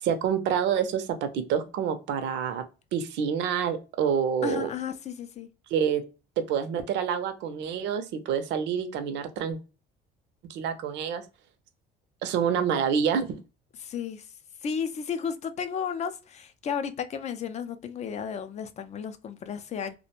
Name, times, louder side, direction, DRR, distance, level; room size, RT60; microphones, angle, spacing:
voice 1, 0.0-2.6 2.9-4.7 5.7-6.0 6.4-9.6 10.5-11.2 12.2-13.4, right 7 dB, 70° right, 0.5 m, -27 dB
voice 2, 4.4-5.5 13.8-14.3 14.6-19.9, left 7 dB, 35° left, 0.4 m, -33 dB
2.4 x 2.1 x 2.8 m
cardioid pair, 120°, 19 cm